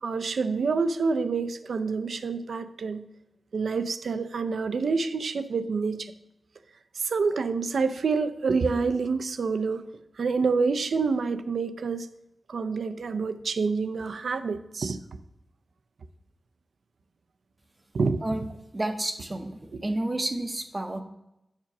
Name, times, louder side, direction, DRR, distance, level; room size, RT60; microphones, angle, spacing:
voice 1, 0.0-3.0 3.5-6.1 7.0-9.9 10.2-12.1 12.5-15.0 17.9-18.2 19.7-19.8, right 4 dB, 85° right, 11 dB, 0.5 m, -27 dB
voice 2, 18.7-21.0, right 1 dB, 25° right, 5 dB, 0.7 m, -30 dB
7.4 x 6.0 x 5.9 m, 0.87 s
wide cardioid pair, 110°, 0 cm